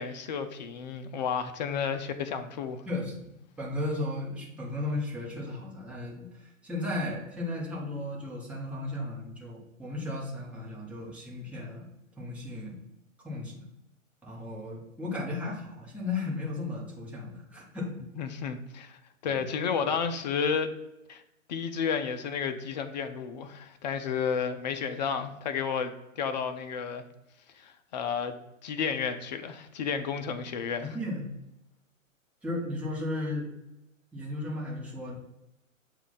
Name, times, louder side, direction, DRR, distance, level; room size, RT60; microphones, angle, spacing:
voice 1, 0.0-2.8 18.2-19.0 19.2-20.7 21.1-21.2 21.5-27.0 27.5-28.3 28.6-31.0, left 6 dB, 35° left, 9 dB, 0.5 m, -32 dB
voice 2, 2.9-3.2 3.6-11.9 12.2-12.8 13.2-13.7 14.2-17.9 19.2-19.5 30.8-31.3 32.4-33.5 34.1-35.1, left 2 dB, 5° right, -5 dB, 1.0 m, -35 dB
7.0 x 2.4 x 5.5 m, 0.92 s
figure-of-eight pair, 125°, 40 cm